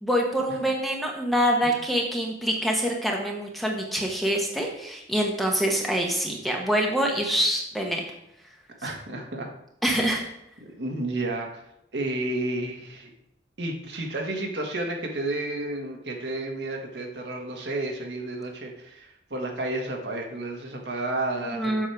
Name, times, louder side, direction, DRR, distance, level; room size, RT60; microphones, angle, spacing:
voice 1, 0.0-8.0 9.8-10.2 21.5-21.9, equal, ahead, 0 dB, 1.1 m, -25 dB
voice 2, 8.8-9.5 9.9-10.1 10.7-11.6 11.9-13.1 13.6-21.9, right 2 dB, 70° right, 1 dB, 1.5 m, -31 dB
7.4 x 6.3 x 4.7 m, 0.82 s
head